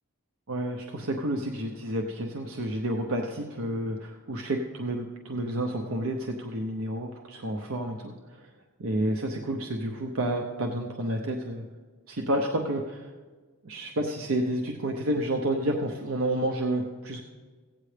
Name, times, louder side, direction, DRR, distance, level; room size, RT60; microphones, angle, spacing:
voice 1, 0.5-8.5 8.8-11.6 12.1-13.1 13.6-17.2, right 1 dB, 75° right, 2 dB, 0.8 m, -30 dB
15.5 x 8.9 x 3.3 m, 1.4 s
head